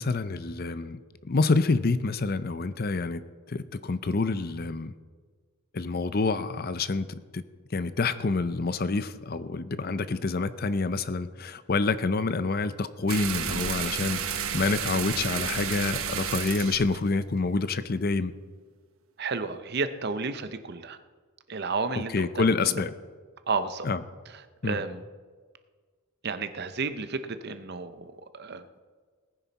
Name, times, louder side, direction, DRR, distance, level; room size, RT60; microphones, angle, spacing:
voice 1, 0.0-3.2 3.5-4.9 5.7-7.4 7.7-18.3 22.0-22.9 23.8-24.0 24.6-24.8, left 3 dB, 45° left, 13 dB, 0.5 m, -27 dB
sound 1, 13.1-18.0, right 7 dB, 70° right, 1.1 m, -32 dB
voice 2, 19.2-21.0 21.5-22.5 23.5-23.9 24.6-25.0 26.2-28.6, right 4 dB, 45° right, 10 dB, 0.7 m, -32 dB
18.5 x 10.0 x 4.1 m, 1.5 s
head